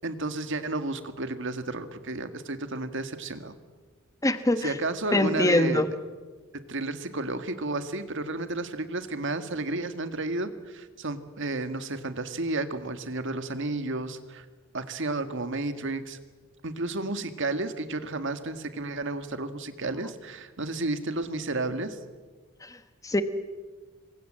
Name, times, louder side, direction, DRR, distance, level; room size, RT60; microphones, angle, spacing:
voice 1, 0.0-3.6 4.6-5.8 6.5-14.5 14.7-16.2 16.6-22.0, right 2 dB, 60° right, 9 dB, 1.9 m, -32 dB
voice 2, 4.2-4.8 5.1-5.9 22.6-23.2, left 1 dB, 15° left, 10 dB, 1.3 m, -24 dB
27.5 x 23.0 x 7.6 m, 1.4 s
head